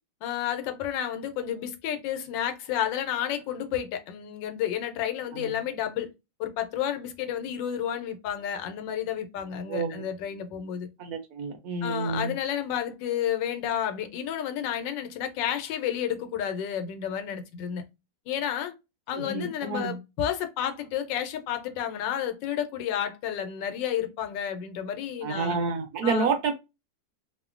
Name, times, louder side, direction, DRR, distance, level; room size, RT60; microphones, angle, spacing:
voice 1, 0.2-6.1 6.4-10.9 11.8-17.8 18.3-18.7 19.1-25.6 26.0-26.3, left 10 dB, 85° left, 1.3 m, -31 dB
voice 2, 9.7-10.0 11.0-12.3 19.1-20.0 25.2-26.5, right 4 dB, 70° right, 1.0 m, -29 dB
2.9 x 2.1 x 2.4 m
omnidirectional pair, 1.9 m